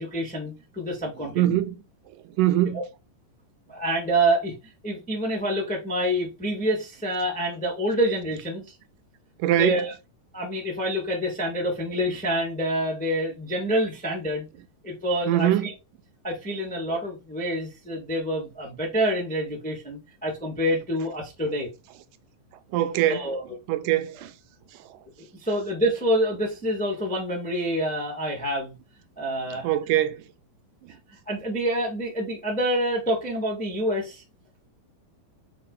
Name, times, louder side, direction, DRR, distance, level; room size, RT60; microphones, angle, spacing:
voice 1, 0.0-1.6 3.7-4.6 4.8-8.7 9.6-9.9 10.3-14.4 14.8-15.7 16.2-21.7 23.0-23.4 25.2-28.8 29.2-29.7 31.3-34.2, equal, 5° left, 0.6 m, -27 dB
voice 2, 1.4-1.8 2.2-2.8 9.4-9.9 15.3-15.7 22.7-23.3 23.7-24.4 24.8-25.0 29.5-30.2 30.8-30.9, right 13 dB, 80° right, 2.1 m, -23 dB
5.8 x 4.2 x 4.0 m
omnidirectional pair, 3.9 m